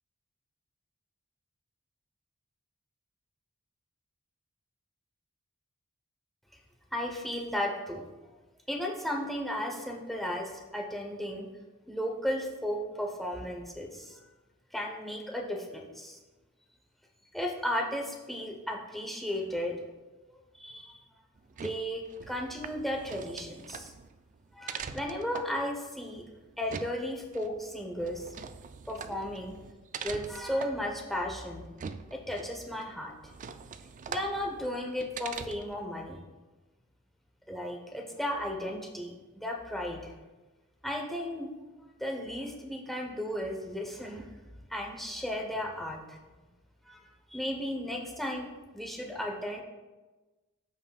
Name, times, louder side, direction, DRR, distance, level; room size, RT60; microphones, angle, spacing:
voice 1, 6.9-8.0 8.7-11.5 11.9-14.2 14.7-16.2 17.3-19.8 20.3-21.0 21.6-23.9 24.5-26.2 26.6-28.3 28.9-29.6 30.0-31.7 32.1-33.1 34.1-36.2 37.5-40.1 40.8-41.5 42.0-44.3 44.7-46.2 46.9-47.0 47.3-49.6, equal, ahead, 0 dB, 0.9 m, -35 dB
sound 1, 21.4-35.9, right 6 dB, 35° right, 0.3 m, -44 dB
13.5 x 5.4 x 2.4 m, 1.2 s
head